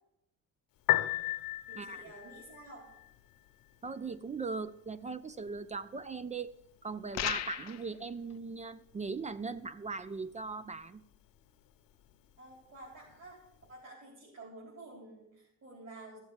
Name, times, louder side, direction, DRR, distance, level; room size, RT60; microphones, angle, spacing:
Piano, 0.7-13.8, left 16 dB, 75° left, 1.0 m, -41 dB
voice 1, 1.7-2.9 12.4-13.4 13.7-16.2, right 2 dB, 45° right, -3 dB, 4.0 m, -50 dB
voice 2, 3.8-6.5 6.8-11.0, right 4 dB, 20° right, 14 dB, 0.4 m, -39 dB
sound 1, 7.1-7.9, left 12 dB, 50° left, 0.6 m, -35 dB
14.0 x 7.2 x 7.2 m, 0.88 s
cardioid pair, 120°, 35 cm